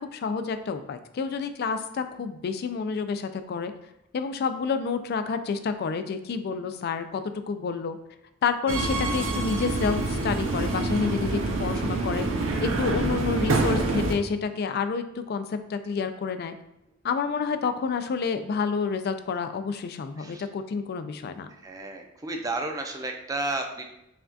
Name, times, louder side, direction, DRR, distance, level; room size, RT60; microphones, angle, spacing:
voice 1, 0.0-3.7 4.1-7.2 7.5-8.0 8.4-12.3 12.6-16.5 17.0-21.5, left 5 dB, 50° left, 9 dB, 0.3 m, -29 dB
Subway metro underground, 8.7-14.1, right 2 dB, 75° right, 0.5 m, -26 dB
voice 2, 21.5-23.8, right 2 dB, 20° right, 3 dB, 0.4 m, -32 dB
5.6 x 2.3 x 2.5 m, 0.85 s
head